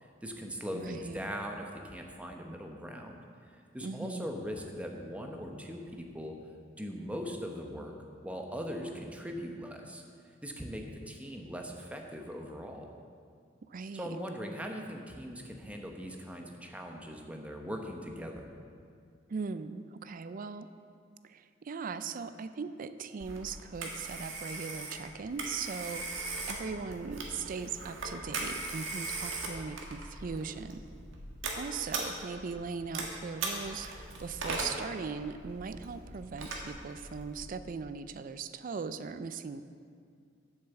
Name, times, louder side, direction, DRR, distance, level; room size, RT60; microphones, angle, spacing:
voice 1, 0.0-3.2 3.5-6.4 6.8-7.9 8.2-10.0 10.4-12.9 13.9-18.5, equal, 5° right, 2 dB, 0.9 m, -40 dB
voice 2, 0.7-1.3 3.8-4.3 13.7-14.1 19.3-20.7 21.2-26.1 26.5-30.8 31.5-39.6, right 5 dB, 45° right, 12 dB, 0.4 m, -39 dB
Telephone, 23.2-37.4, right 3 dB, 90° right, 1.5 m, -40 dB
8.0 x 6.6 x 7.1 m, 2.2 s
head